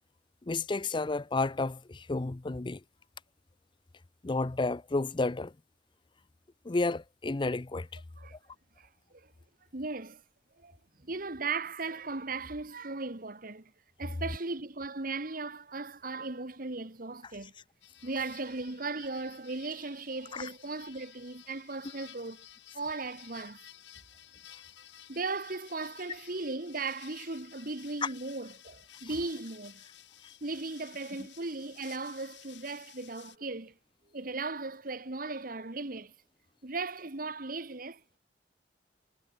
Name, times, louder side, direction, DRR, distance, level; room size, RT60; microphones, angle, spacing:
voice 1, 0.4-2.8 4.2-5.5 6.6-7.9 20.3-20.5 28.0-28.1, left 3 dB, 25° left, 0.5 m, -31 dB
voice 2, 8.8-9.3 9.7-10.2 10.6-13.7 14.0-17.5 18.0-22.4 22.7-23.6 25.1-29.8 30.4-33.7 34.1-36.1 36.6-38.2, right 3 dB, 50° right, 1.6 m, -37 dB
sound 1, 17.8-33.4, left 12 dB, 75° left, 3.4 m, -54 dB
head